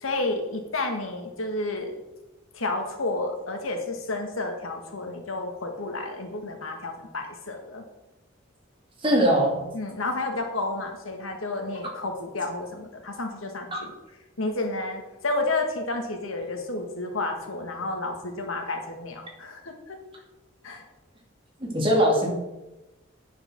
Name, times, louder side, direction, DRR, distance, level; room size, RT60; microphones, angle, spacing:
voice 1, 0.0-1.9 2.5-7.8 9.7-13.9 14.4-20.0 20.6-20.8, left 2 dB, 85° left, 4 dB, 1.6 m, -31 dB
voice 2, 9.0-9.6 13.7-13.8 21.6-22.3, equal, 25° right, -2 dB, 2.3 m, -21 dB
9.5 x 5.2 x 6.1 m, 1.0 s
head